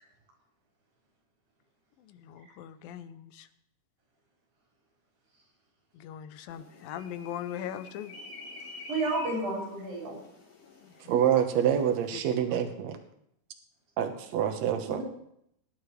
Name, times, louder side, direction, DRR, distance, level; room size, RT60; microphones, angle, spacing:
voice 1, 2.0-3.5 5.9-8.1 10.8-11.1, left 10 dB, 90° left, 12 dB, 2.5 m, -40 dB
sound 1, 6.5-12.1, left 3 dB, 65° left, 4.8 m, -48 dB
voice 2, 8.6-10.2 14.9-15.0, right 2 dB, 90° right, -3 dB, 6.3 m, -32 dB
voice 3, 11.0-13.0 14.0-15.0, right 9 dB, 60° right, 6 dB, 2.1 m, -26 dB
20.0 x 11.0 x 3.2 m, 0.73 s
omnidirectional pair, 4.0 m